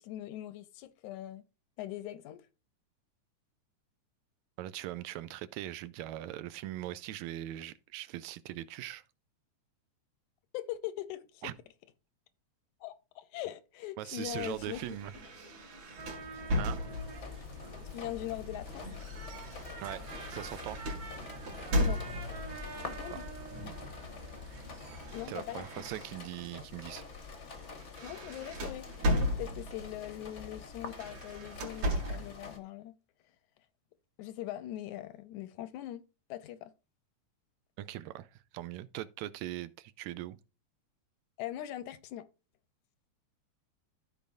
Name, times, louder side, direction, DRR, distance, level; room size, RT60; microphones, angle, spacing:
voice 1, 0.0-1.4 1.8-2.4 10.5-11.5 12.8-14.8 17.9-18.9 21.8-22.0 22.8-23.2 25.1-25.8 28.0-33.0 34.2-36.0 36.3-36.7 41.4-42.3, left 13 dB, 85° left, 2.0 m, -41 dB
voice 2, 4.6-9.0 11.4-11.5 14.0-15.1 16.6-16.8 19.8-20.0 20.3-20.8 23.1-23.2 25.3-27.0 37.8-40.4, right 14 dB, 80° right, 1.8 m, -40 dB
sound 1, 14.3-17.4 18.3-22.5 23.5-23.9 24.2-26.5 27.0-27.2 27.5-29.9 30.8-32.4, left 1 dB, 60° right, 3.2 m, -36 dB
sound 2, 16.0-25.3, right 1 dB, 45° right, 1.7 m, -45 dB
sound 3, 16.9-32.6, left 4 dB, 55° left, 0.7 m, -47 dB
14.5 x 5.0 x 2.6 m
omnidirectional pair, 3.5 m